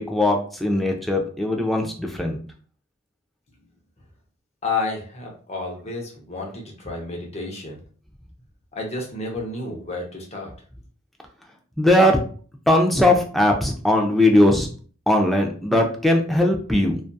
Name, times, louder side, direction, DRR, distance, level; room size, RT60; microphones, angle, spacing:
voice 1, 0.0-2.4 11.8-12.2 12.7-14.7 15.1-17.0, left 1 dB, ahead, 1 dB, 0.3 m, -19 dB
voice 2, 4.6-7.8 8.7-10.5, left 3 dB, 30° left, 0 dB, 0.7 m, -30 dB
2.6 x 2.4 x 2.2 m, 0.42 s
head